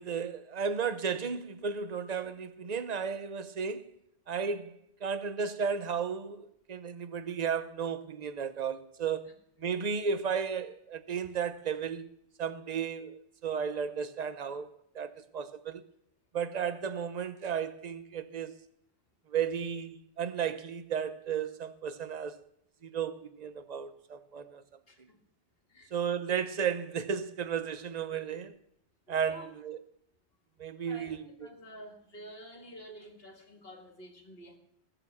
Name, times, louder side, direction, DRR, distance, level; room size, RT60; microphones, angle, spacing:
voice 1, 0.0-3.9 4.3-9.3 9.6-12.1 12.4-14.7 14.9-15.8 16.3-18.5 19.3-22.4 22.8-24.6 25.9-28.5 29.1-29.8 30.6-31.2, right 6 dB, 40° right, 0.9 m, -34 dB
voice 2, 24.9-25.2 25.7-25.9 29.2-29.5 30.9-34.6, equal, 60° left, 2.2 m, -49 dB
20.5 x 7.0 x 7.4 m
omnidirectional pair, 1.1 m